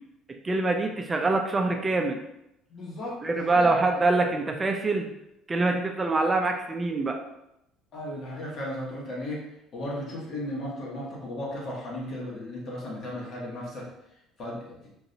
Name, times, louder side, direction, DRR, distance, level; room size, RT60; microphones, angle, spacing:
voice 1, 0.4-2.2 3.2-5.1 5.5-7.2, right 3 dB, 25° right, 3 dB, 0.4 m, -25 dB
voice 2, 2.7-3.7 7.9-9.4 9.7-13.9 14.4-14.8, left 1 dB, 55° left, -3 dB, 1.4 m, -35 dB
3.8 x 2.7 x 2.6 m, 0.85 s
supercardioid pair, 85°, 0 cm